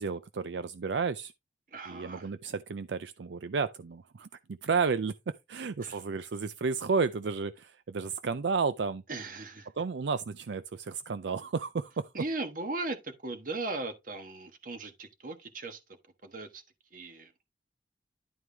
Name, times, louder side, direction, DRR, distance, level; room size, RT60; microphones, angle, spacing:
voice 1, 0.0-1.3 1.8-4.3 4.6-9.0 9.8-12.1, right 5 dB, 75° right, 0.5 m, -32 dB
voice 2, 1.7-2.3 5.8-6.0 9.1-9.7 12.1-15.8 16.2-16.6 16.9-17.3, right 2 dB, 45° right, 1.4 m, -38 dB
11.0 x 4.7 x 3.4 m
head